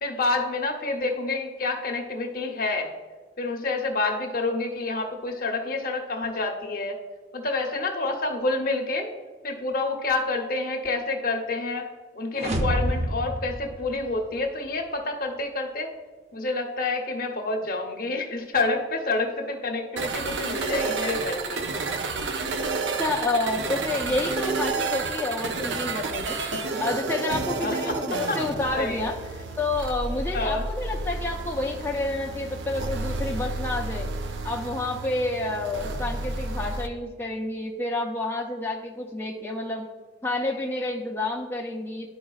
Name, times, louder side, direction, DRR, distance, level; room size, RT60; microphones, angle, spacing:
voice 1, 0.0-2.9 3.4-6.9 7.3-9.1 9.4-11.9 12.1-15.9 16.3-21.7 27.6-28.0 28.3-28.4 28.7-29.0 30.3-30.7, left 3 dB, 50° left, 3 dB, 0.9 m, -28 dB
sound 1, 12.3-14.5, equal, 35° right, 0.6 m, -28 dB
sound 2, 20.0-36.9, right 3 dB, 80° right, 0.6 m, -31 dB
voice 2, 23.0-26.4 26.8-29.2 29.6-34.1 34.4-39.8 40.2-42.1, left 2 dB, 10° left, -1 dB, 0.4 m, -29 dB
11.5 x 4.8 x 2.4 m, 1.4 s
head